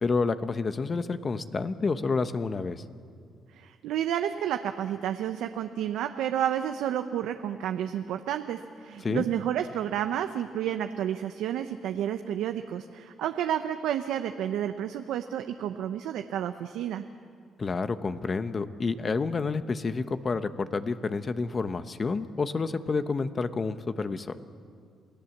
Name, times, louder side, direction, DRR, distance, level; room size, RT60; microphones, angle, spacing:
voice 1, 0.0-2.8 9.0-9.3 17.6-24.4, left 4 dB, 35° left, 11 dB, 1.1 m, -29 dB
voice 2, 3.5-17.0, right 10 dB, 85° right, 7 dB, 0.7 m, -30 dB
28.0 x 17.5 x 7.3 m, 2.2 s
cardioid pair, 90°, 0 cm